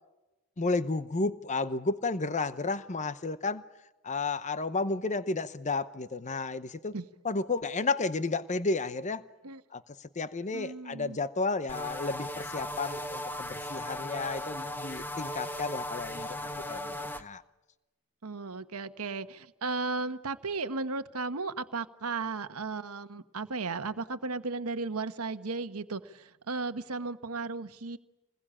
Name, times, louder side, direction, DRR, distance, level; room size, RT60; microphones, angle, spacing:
voice 1, 0.6-3.6 4.0-7.0 7.2-9.3 9.7-9.8 10.2-17.4, left 3 dB, 35° left, 0.8 m, -32 dB
voice 2, 10.5-11.2 18.2-28.0, right 3 dB, 75° right, 1.2 m, -35 dB
sound 1, 11.7-17.2, left 1 dB, 10° left, 1.1 m, -37 dB
27.0 x 21.0 x 8.8 m
head